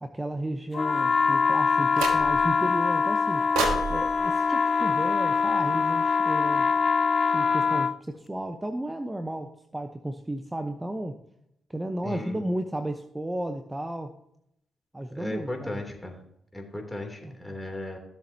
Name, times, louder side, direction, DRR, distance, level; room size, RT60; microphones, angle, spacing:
voice 1, 0.0-3.5 3.9-6.7 7.3-11.2 11.7-14.1 14.9-15.8 17.2-17.6, right 1 dB, 15° right, 6 dB, 0.9 m, -33 dB
sound 1, 0.7-8.0, left 5 dB, 45° left, 0.5 m, -24 dB
sound 2, 1.9-2.6 3.5-5.8, right 5 dB, 90° right, 1.5 m, -33 dB
voice 2, 12.0-12.4 15.1-16.2 16.5-18.0, left 1 dB, 10° left, 2 dB, 3.1 m, -36 dB
15.5 x 7.1 x 2.9 m, 0.75 s
supercardioid pair, 55°, 0 cm